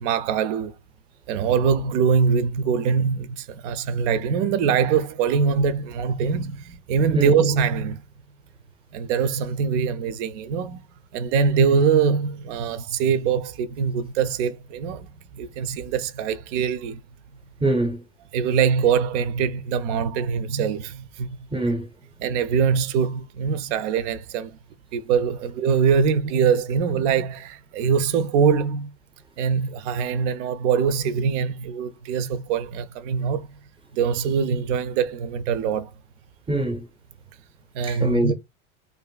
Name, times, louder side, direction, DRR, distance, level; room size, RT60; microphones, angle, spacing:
voice 1, 0.0-0.7 1.3-8.0 8.9-10.8 11.1-15.1 15.3-17.0 18.3-21.3 22.2-24.6 24.9-28.9 29.4-33.5 33.9-35.9 37.7-38.3, right 6 dB, 70° right, 0.5 m, -23 dB
voice 2, 17.6-18.0 21.5-21.9 36.5-36.9 37.8-38.3, right 2 dB, 15° right, 0.6 m, -23 dB
2.5 x 2.5 x 2.2 m
hypercardioid pair, 105°, 37 cm